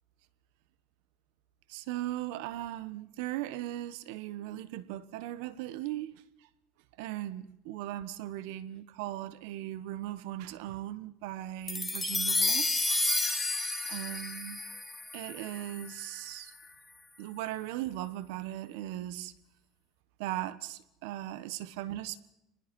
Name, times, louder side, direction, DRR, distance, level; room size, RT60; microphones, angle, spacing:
voice 1, 1.7-6.2 7.0-12.7 13.9-14.6 15.1-16.5 17.2-19.3 20.2-22.2, right 14 dB, 85° right, 1.3 m, -38 dB
sound 1, 11.7-16.2, left 2 dB, 5° left, 2.4 m, -31 dB
27.5 x 20.5 x 5.4 m
cardioid pair, 155°, 0 cm